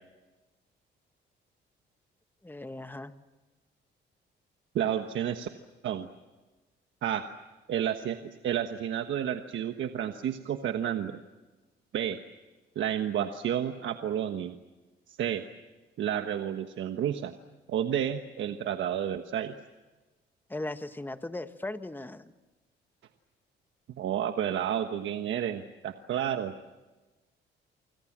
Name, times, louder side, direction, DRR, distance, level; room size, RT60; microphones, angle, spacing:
voice 1, 2.4-3.1 20.5-22.3, left 2 dB, 10° left, 10 dB, 1.4 m, -38 dB
voice 2, 4.7-5.5 5.8-6.1 7.0-7.3 7.7-11.2 11.9-12.2 12.7-14.6 15.1-15.4 16.0-17.3 17.7-19.5 24.0-26.8, right 10 dB, 70° right, 7 dB, 1.3 m, -31 dB
28.5 x 25.5 x 7.5 m, 1.2 s
cardioid pair, 90°, 20 cm